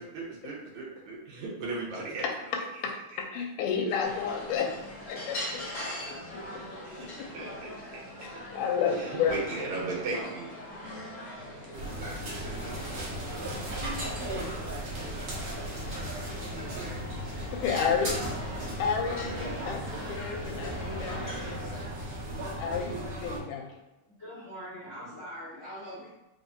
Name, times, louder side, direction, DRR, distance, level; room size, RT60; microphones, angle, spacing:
voice 1, 0.0-2.5 3.1-3.2 6.8-8.3 8.9-10.5 11.3-11.5, right 3 dB, 70° right, -4 dB, 2.2 m, -37 dB
voice 2, 3.2-4.7 5.1-5.6 8.5-9.4 17.5-18.2 18.8-21.2 22.6-23.7, left 6 dB, 85° left, 2 dB, 2.1 m, -30 dB
sound 1, 4.0-21.6, left 1 dB, 55° left, 1.0 m, -42 dB
sound 2, 11.7-23.4, right 1 dB, 55° right, 1.6 m, -36 dB
voice 3, 24.2-26.1, equal, 70° left, -10 dB, 0.7 m, -42 dB
5.3 x 3.3 x 2.6 m, 0.93 s
omnidirectional pair, 3.6 m